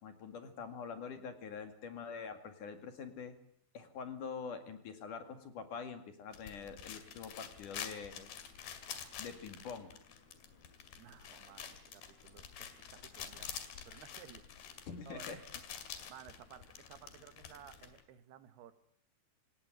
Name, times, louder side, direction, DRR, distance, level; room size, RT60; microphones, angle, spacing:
voice 1, 0.0-3.4 3.7-8.3 9.2-10.0 14.9-15.4, left 6 dB, 55° left, 8 dB, 3.5 m, -45 dB
sound 1, 6.3-18.0, left 8 dB, 75° left, 4.2 m, -48 dB
voice 2, 11.0-14.5 15.0-15.5 16.1-18.7, right 10 dB, 85° right, 12 dB, 3.4 m, -56 dB
26.5 x 18.5 x 9.3 m, 0.66 s
omnidirectional pair, 4.5 m